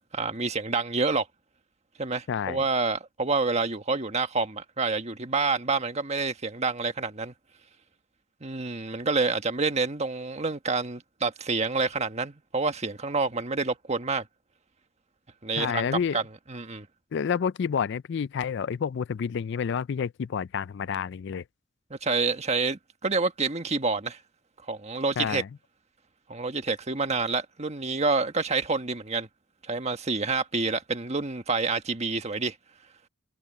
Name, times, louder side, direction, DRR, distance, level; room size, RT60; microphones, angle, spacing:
voice 1, 0.1-1.3 2.0-7.3 8.4-14.3 15.4-15.9 16.1-16.2 16.5-16.9 21.9-24.2 24.7-25.4 26.3-29.3 29.6-32.5, right 4 dB, 35° right, 1.5 m, -28 dB
voice 2, 2.3-2.6 15.6-16.2 17.1-21.4 25.2-25.5, left 7 dB, 65° left, 0.4 m, -29 dB
head